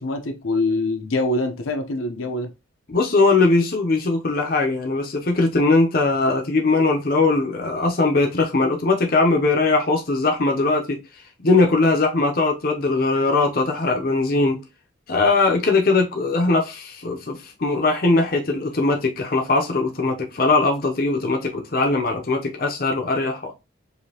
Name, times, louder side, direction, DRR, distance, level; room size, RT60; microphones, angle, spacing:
voice 1, 0.0-2.5, left 2 dB, 85° left, 0.8 m, -24 dB
voice 2, 2.9-11.0 11.4-14.6 15.1-23.5, left 3 dB, 45° left, 0.6 m, -20 dB
5.0 x 2.7 x 2.8 m
head